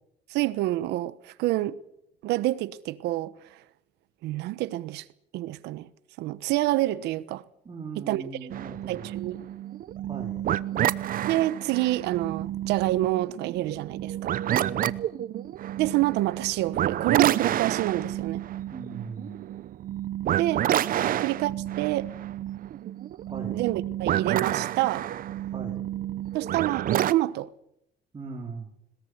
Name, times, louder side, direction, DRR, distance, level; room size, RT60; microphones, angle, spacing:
voice 1, 0.3-1.8 2.2-3.6 4.2-5.0 5.3-5.9 6.2-7.4 8.0-8.5 8.9-9.4 11.3-14.3 15.8-18.4 20.4-20.7 21.0-22.1 23.4-25.1 26.3-27.5, right 16 dB, 90° right, 1.2 m, -27 dB
voice 2, 7.6-9.1 10.1-10.4 14.5-14.9 18.7-19.4 21.0-21.2 23.3-23.6 25.5-25.9 28.1-28.7, right 4 dB, 30° right, 4.6 m, -39 dB
sound 1, 8.5-27.1, right 12 dB, 55° right, 0.8 m, -29 dB
22.0 x 20.5 x 8.2 m
cardioid pair, 110°, 17 cm